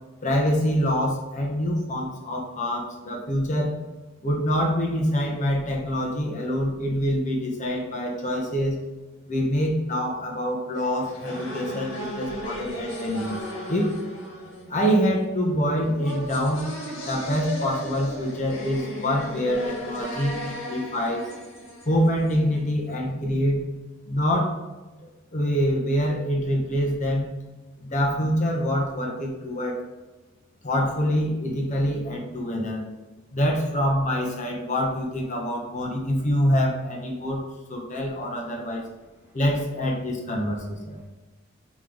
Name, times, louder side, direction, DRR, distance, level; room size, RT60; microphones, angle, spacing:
voice 1, 0.2-3.7 4.2-8.8 9.3-13.4 13.7-14.0 14.7-16.7 17.0-21.3 21.9-23.7 24.1-24.6 25.3-27.3 27.8-29.8 30.6-32.8 33.3-38.9 39.3-41.0, equal, 40° left, -1 dB, 1.1 m, -25 dB
sound 1, 10.7-22.6, equal, 70° left, 1.9 m, -36 dB
voice 2, 38.4-39.4 40.1-41.1, left 1 dB, 10° right, -2 dB, 1.2 m, -62 dB
5.4 x 5.1 x 4.0 m, 1.2 s
head